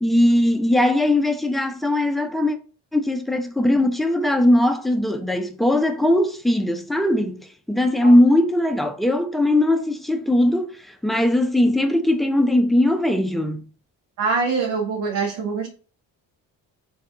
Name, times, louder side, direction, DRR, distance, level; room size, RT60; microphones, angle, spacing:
voice 1, 0.0-2.6 2.9-13.6, left 1 dB, ahead, 0.3 m, -19 dB
voice 2, 14.2-15.7, right 4 dB, 85° right, 0.8 m, -24 dB
2.7 x 2.3 x 3.4 m
supercardioid pair, 50°, 46 cm